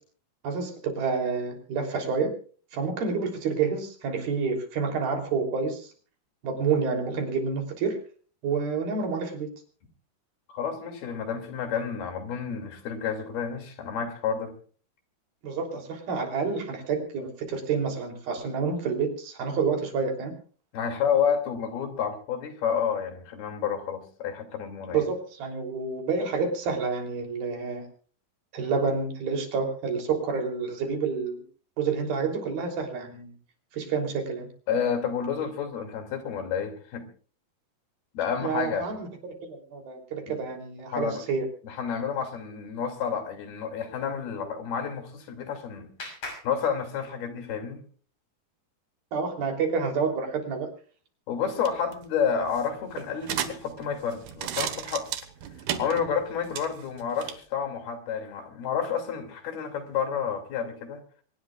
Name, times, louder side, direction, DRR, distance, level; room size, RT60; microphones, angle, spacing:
voice 1, 0.4-2.3 2.7-5.9 6.4-8.0 8.4-9.5 15.4-20.3 24.9-27.9 28.5-31.4 31.8-33.3 33.7-34.5 38.4-39.1 39.4-41.5 49.1-50.7, right 5 dB, 75° right, 4 dB, 5.1 m, -28 dB
voice 2, 10.5-14.5 20.7-25.1 34.7-37.1 38.1-38.9 40.3-40.4 40.9-41.2 41.6-45.9 46.4-47.8 51.3-55.1 55.8-61.0, left 7 dB, 80° left, 5 dB, 4.6 m, -30 dB
Clapping, 44.9-47.5, left 2 dB, 45° left, 7.3 m, -44 dB
sound 1, 51.5-57.4, right 10 dB, 90° right, 3.4 m, -36 dB
25.0 x 18.5 x 2.4 m, 0.42 s
omnidirectional pair, 4.4 m